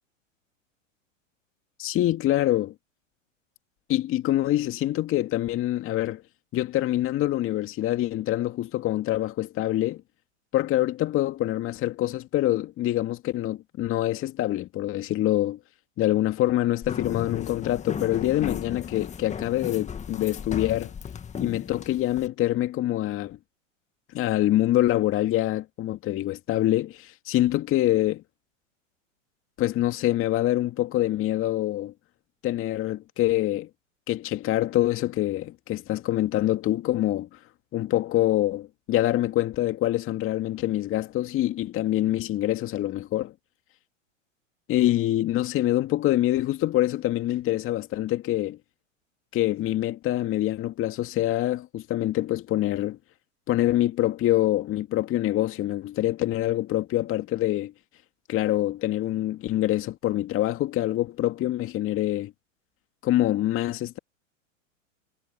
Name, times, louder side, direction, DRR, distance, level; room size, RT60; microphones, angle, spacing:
voice 1, 1.8-2.7 3.9-6.2 6.5-10.0 10.5-15.6 16.0-20.9 21.4-23.4 24.1-28.2 29.6-31.9 32.4-33.7 34.1-37.3 37.7-43.3 44.7-48.6 49.3-53.0 53.5-57.7 58.3-62.3 63.0-64.0, left 14 dB, 35° left, 2.1 m, -25 dB
sound 1, 16.8-22.3, left 7 dB, 20° left, 1.9 m, -35 dB
hypercardioid pair, 105°, 39 cm